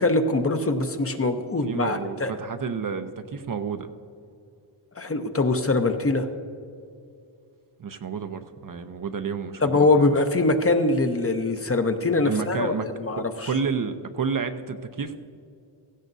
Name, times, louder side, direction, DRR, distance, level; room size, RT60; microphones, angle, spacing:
voice 1, 0.0-2.3 5.0-6.3 9.6-13.5, left 2 dB, 30° left, 6 dB, 0.8 m, -23 dB
voice 2, 1.6-3.9 7.8-10.1 12.2-15.2, right 5 dB, 45° right, 8 dB, 0.7 m, -30 dB
16.5 x 15.0 x 2.7 m, 2.5 s
cardioid pair, 95°, 47 cm